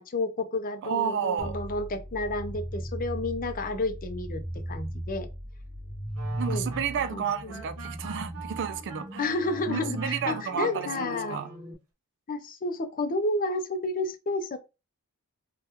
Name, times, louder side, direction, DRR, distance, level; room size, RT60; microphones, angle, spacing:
voice 1, 0.0-4.4 4.7-5.3 6.5-6.7 7.1-7.6 9.2-11.4 12.3-14.6, left 2 dB, 40° left, 0.5 m, -31 dB
voice 2, 0.8-1.6 6.4-9.2 9.7-11.5, right 7 dB, 55° right, 0.4 m, -31 dB
sound 1, 1.4-11.7, equal, 20° right, 0.8 m, -37 dB
sound 2, 6.1-11.7, right 5 dB, 75° right, 0.9 m, -44 dB
3.4 x 2.2 x 2.9 m
head